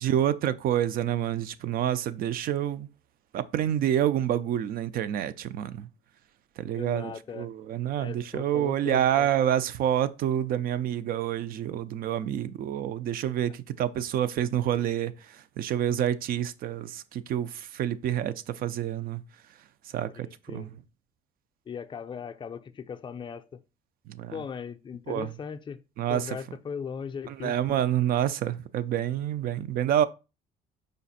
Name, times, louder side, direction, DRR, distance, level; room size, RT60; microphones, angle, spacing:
voice 1, 0.0-2.9 3.3-5.9 6.6-15.1 15.6-19.2 19.9-20.7 24.1-24.3 25.1-25.3 26.0-26.3 27.3-30.0, right 10 dB, 60° right, 0.4 m, -28 dB
voice 2, 6.7-7.5 8.0-9.3 20.2-20.7 21.7-23.6 24.3-25.8 26.1-27.6, left 6 dB, 30° left, 0.4 m, -38 dB
5.1 x 2.4 x 4.1 m
cardioid pair, 110°, 17 cm